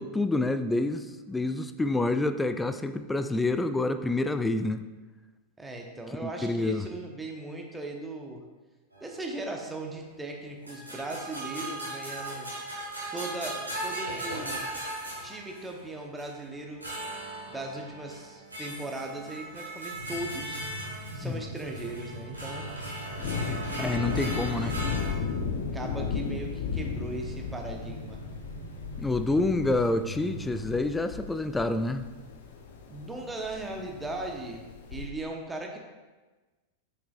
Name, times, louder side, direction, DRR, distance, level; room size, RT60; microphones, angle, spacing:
voice 1, 0.0-4.8 6.2-6.9 21.2-21.4 23.8-24.8 29.0-32.1, left 2 dB, 10° left, 10 dB, 0.4 m, -28 dB
voice 2, 5.6-8.4 9.0-12.5 13.1-14.6 15.2-16.9 17.5-20.6 21.1-22.7 25.7-28.2 32.9-35.8, right 2 dB, 10° right, 1 dB, 1.0 m, -38 dB
sound 1, 8.9-9.8 10.7-15.8 16.2-16.4 16.8-25.1, right 1 dB, 85° right, 1.9 m, -38 dB
sound 2, 19.9-30.8, right 1 dB, 85° left, 0.9 m, -42 dB
Thunder, 22.3-35.1, left 6 dB, 55° left, 0.6 m, -36 dB
7.9 x 6.0 x 2.5 m, 1.2 s
figure-of-eight pair, 90°, 0 cm